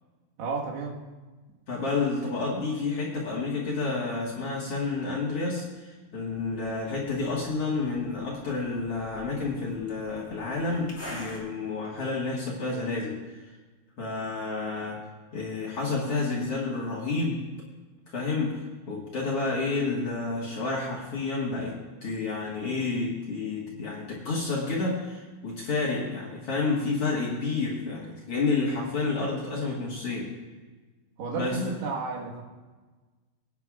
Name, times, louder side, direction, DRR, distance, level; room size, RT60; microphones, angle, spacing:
voice 1, 0.4-1.0 31.2-32.4, right 3 dB, 85° right, -2 dB, 3.7 m, -32 dB
voice 2, 1.7-13.5 14.0-17.5 18.1-30.4 31.3-31.7, left 3 dB, 50° left, -5 dB, 2.0 m, -30 dB
sound 1, 6.2-11.4, left 1 dB, 20° left, 2.2 m, -47 dB
22.5 x 9.6 x 2.4 m, 1.3 s
omnidirectional pair, 4.5 m